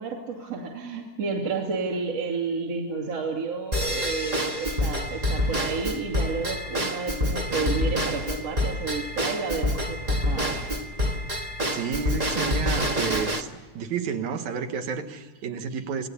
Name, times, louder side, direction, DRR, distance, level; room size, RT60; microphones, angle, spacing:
voice 1, 0.0-10.6, right 4 dB, 50° right, -1 dB, 3.4 m, -31 dB
Drum kit / Drum / Bell, 3.7-13.4, equal, 35° right, 0.6 m, -27 dB
voice 2, 11.7-16.1, right 6 dB, 70° right, 7 dB, 2.8 m, -31 dB
27.5 x 19.0 x 8.6 m, 1.4 s
omnidirectional pair, 3.6 m